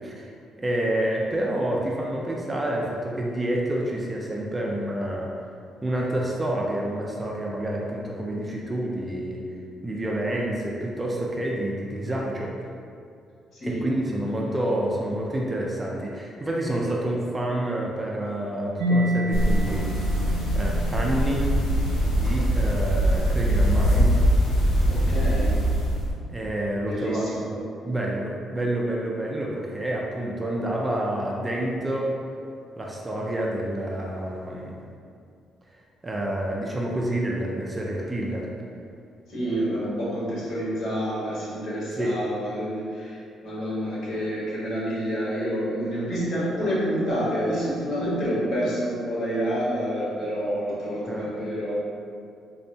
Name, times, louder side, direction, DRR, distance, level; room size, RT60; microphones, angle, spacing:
voice 1, 0.6-5.3 5.8-9.4 9.8-12.5 13.6-19.8 20.5-21.5 22.1-24.2 26.3-27.6 27.8-32.1 32.8-34.8 36.0-38.5 42.0-42.1 51.1-51.3, right 1 dB, 15° right, -2 dB, 0.4 m, -28 dB
voice 2, 13.5-13.9 24.9-25.5 26.9-27.5 27.8-28.0 39.3-51.7, equal, 60° left, -8 dB, 1.3 m, -28 dB
Mallet percussion, 18.8-26.3, right 1 dB, 90° right, 0.4 m, -32 dB
sound 1, 19.3-26.1, equal, 90° left, 0.8 m, -22 dB
4.4 x 2.1 x 2.7 m, 2.4 s
cardioid pair, 115°, 0 cm